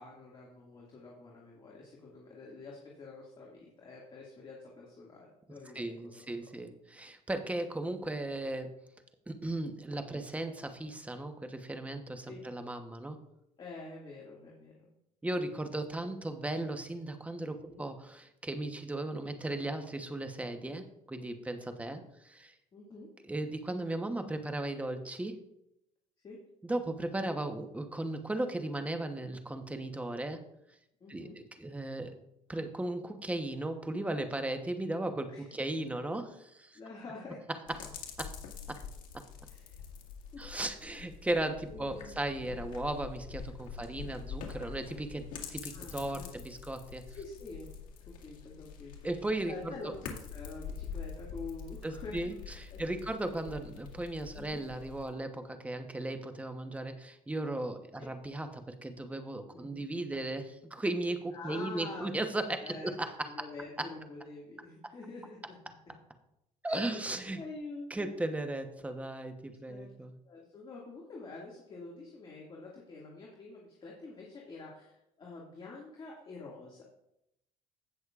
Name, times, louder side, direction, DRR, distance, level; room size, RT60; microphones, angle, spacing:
voice 1, 0.0-6.3 10.1-10.2 12.3-12.4 13.6-14.9 17.5-17.8 22.7-23.1 26.2-26.4 31.0-31.4 35.3-35.5 36.7-37.4 39.5-39.8 40.3-40.5 41.7-42.1 42.4-42.6 43.8-44.1 45.4-45.5 45.7-46.7 47.1-47.7 48.1-53.1 54.3-54.6 58.0-58.1 59.5-59.9 61.3-62.1 62.6-62.9 63.3-65.6 66.7-67.0 67.3-68.2 69.7-69.9 70.3-76.8, left 3 dB, 35° left, -3 dB, 2.1 m, -47 dB
voice 2, 5.7-8.7 9.3-13.2 15.2-22.5 23.3-25.4 26.7-30.4 31.1-32.2 32.5-36.8 38.2-38.3 38.7-38.8 40.4-47.0 49.0-49.7 51.8-63.3 66.6-67.4 67.9-70.1, right 2 dB, 10° right, 6 dB, 1.0 m, -36 dB
sound 1, 37.7-55.1, left 7 dB, 70° left, 2.0 m, -45 dB
16.5 x 6.3 x 2.5 m, 0.82 s
cardioid pair, 115°, 14 cm